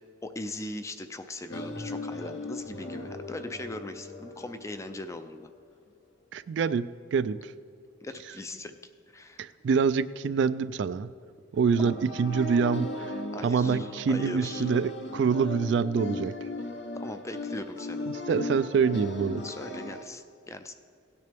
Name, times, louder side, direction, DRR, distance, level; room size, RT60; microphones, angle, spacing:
voice 1, 0.2-5.5 8.0-8.8 9.1-9.5 13.3-14.7 17.0-18.1 19.4-20.7, left 1 dB, 15° left, 9 dB, 0.4 m, -40 dB
sound 1, 1.5-5.6 11.5-20.0, left 2 dB, 60° left, 0.9 m, -37 dB
voice 2, 6.3-6.9 7.1-7.5 9.4-11.1 11.5-12.9 13.4-16.4 18.3-19.4, right 5 dB, 65° right, 15 dB, 0.3 m, -26 dB
17.0 x 9.4 x 3.5 m, 2.3 s
head